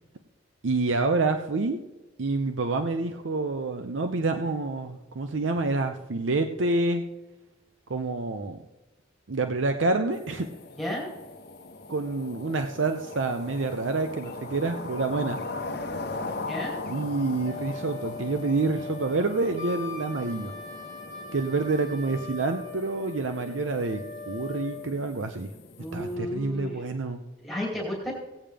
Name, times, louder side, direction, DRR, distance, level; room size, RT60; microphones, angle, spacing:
voice 1, 0.6-1.8 2.2-7.0 7.9-8.6 9.3-10.5 11.9-15.4 16.9-20.5 21.3-24.0 24.3-25.5 25.9-27.2, right 3 dB, 80° right, 6 dB, 0.7 m, -27 dB
sound 1, 10.1-26.2, left 3 dB, 55° left, 1.0 m, -40 dB
voice 2, 10.8-11.1 16.5-16.8 25.8-26.8 27.4-28.1, left 1 dB, ahead, -3 dB, 2.6 m, -32 dB
Wind instrument woodwind instrument, 17.4-24.8, left 4 dB, 35° right, 3.3 m, -41 dB
17.0 x 8.9 x 3.4 m, 1.1 s
head